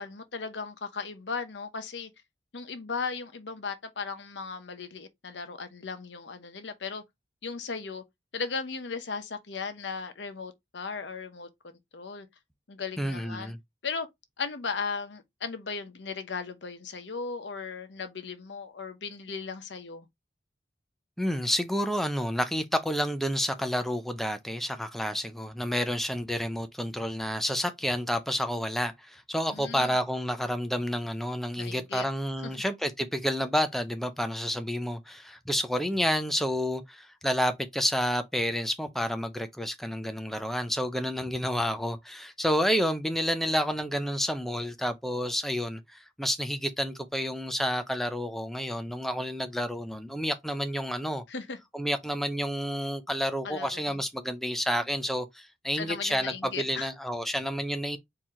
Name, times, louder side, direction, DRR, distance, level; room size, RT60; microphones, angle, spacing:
voice 1, 0.0-2.1 2.5-7.0 7.4-8.0 8.3-12.3 12.7-13.5 13.8-14.1 14.4-20.1 29.5-30.0 31.6-32.0 32.4-32.6 51.3-51.6 53.4-54.0 55.7-56.9, left 5 dB, 80° left, 0.9 m, -37 dB
voice 2, 13.0-13.6 21.2-51.2 51.7-58.0, equal, ahead, 0.5 m, -30 dB
4.5 x 2.9 x 3.6 m
head